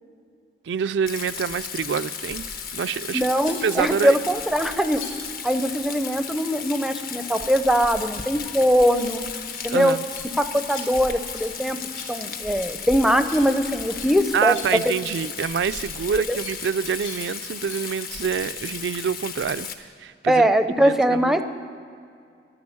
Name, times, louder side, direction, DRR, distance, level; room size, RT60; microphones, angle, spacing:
voice 1, 0.6-2.5 2.7-3.3 3.6-4.2 9.7-10.1 14.3-20.5 20.8-21.3, right 6 dB, 80° right, 12 dB, 0.3 m, -26 dB
Rain, 1.1-19.7, left 6 dB, 50° left, 1.0 m, -35 dB
voice 2, 3.1-5.0 5.4-9.2 9.6-10.0 10.4-11.8 12.1-14.6 16.3-16.4 20.3-21.4, equal, ahead, 9 dB, 0.5 m, -21 dB
sound 1, 3.4-3.9 4.8-5.3 8.7-9.1 9.4-9.7 10.0-10.3 10.6-10.9 11.2-11.5 11.8-12.2 12.4-12.8 13.1-13.5 13.8-15.4 15.6-15.9 16.3-17.2 17.5-17.9 20.5-20.7, left 4 dB, 90° left, 3.3 m, -43 dB
12.0 x 10.5 x 8.4 m, 2.3 s
head